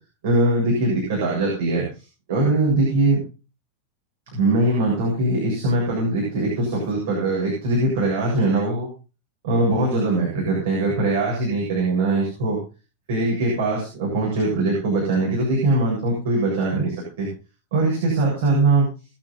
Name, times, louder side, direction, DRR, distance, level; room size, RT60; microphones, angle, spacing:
voice 1, 0.2-1.9 2.3-3.2 4.3-8.9 9.4-12.6 13.1-17.3 17.7-18.9, right 2 dB, 55° right, -3 dB, 7.5 m, -21 dB
21.0 x 8.8 x 4.1 m, 0.34 s
figure-of-eight pair, 90°, 0 cm